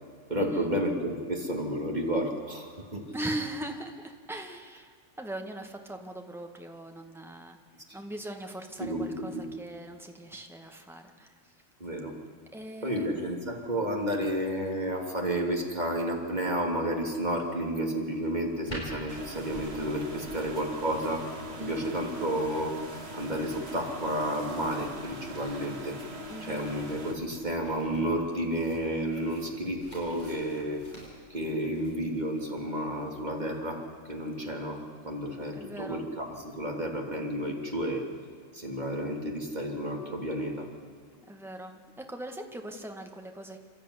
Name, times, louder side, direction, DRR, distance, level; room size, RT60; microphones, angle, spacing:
voice 1, 0.3-3.1 8.8-9.5 11.8-12.1 12.8-21.3 21.6-26.0 26.4-30.8 31.3-33.8 34.1-38.1 38.5-40.7, right 1 dB, 35° right, 1 dB, 3.1 m, -31 dB
voice 2, 3.1-7.6 7.9-11.5 12.5-13.1 21.6-21.8 26.3-26.6 35.5-36.1 41.3-43.6, right 1 dB, ahead, 4 dB, 1.8 m, -40 dB
sound 1, 18.7-31.9, equal, 35° left, 7.5 m, -49 dB
sound 2, 19.1-27.2, equal, 50° right, 2.4 m, -42 dB
28.5 x 13.0 x 9.9 m, 2.1 s
omnidirectional pair, 1.3 m